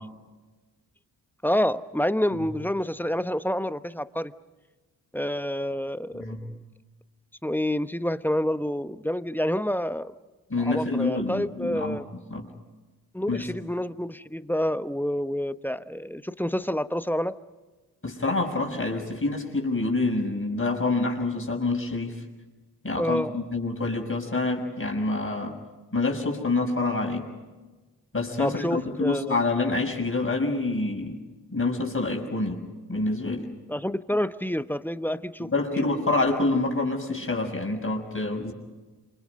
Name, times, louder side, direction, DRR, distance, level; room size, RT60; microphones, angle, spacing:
voice 1, 1.4-4.3 5.1-6.6 7.4-10.1 10.7-12.1 13.1-17.4 23.0-23.3 28.4-29.4 33.7-35.8, equal, 5° left, 12 dB, 1.0 m, -28 dB
voice 2, 10.5-12.0 12.3-12.5 13.3-13.4 18.0-22.2 22.8-25.6 25.9-27.3 28.1-31.2 31.5-32.6 32.9-33.5 35.5-38.5, left 2 dB, 25° left, 2 dB, 6.0 m, -27 dB
28.0 x 26.0 x 5.4 m, 1.2 s
hypercardioid pair, 40°, 47 cm